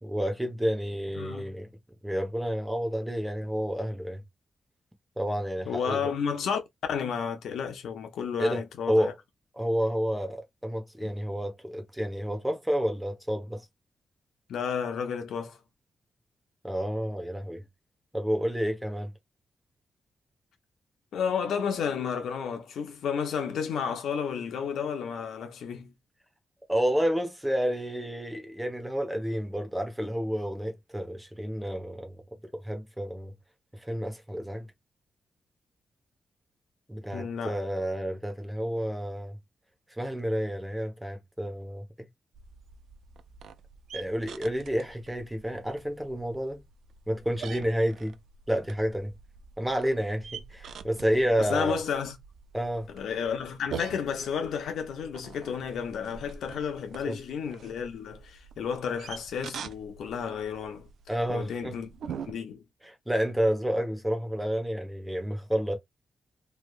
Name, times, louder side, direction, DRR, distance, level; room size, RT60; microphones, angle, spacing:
voice 1, 0.0-1.7 2.0-4.2 5.2-6.1 8.4-9.2 9.5-13.6 16.6-17.6 18.1-19.1 26.7-32.2 32.5-33.3 33.7-34.7 36.9-39.4 40.0-42.1 43.9-46.6 47.1-48.2 48.5-49.1 49.6-51.7 52.5-52.9 57.0-57.2 61.1-61.8 62.8-65.7, equal, 10° right, 1.1 m, -30 dB
voice 2, 1.2-1.5 5.7-6.6 6.9-9.1 11.0-11.1 14.5-15.6 21.1-25.9 37.1-37.6 51.4-52.1 52.9-60.9 61.3-61.9 62.3-62.6, left 7 dB, 90° left, 0.8 m, -32 dB
sound 1, 42.3-62.3, right 6 dB, 80° right, 0.4 m, -45 dB
3.4 x 2.6 x 2.4 m
cardioid pair, 80°, 0 cm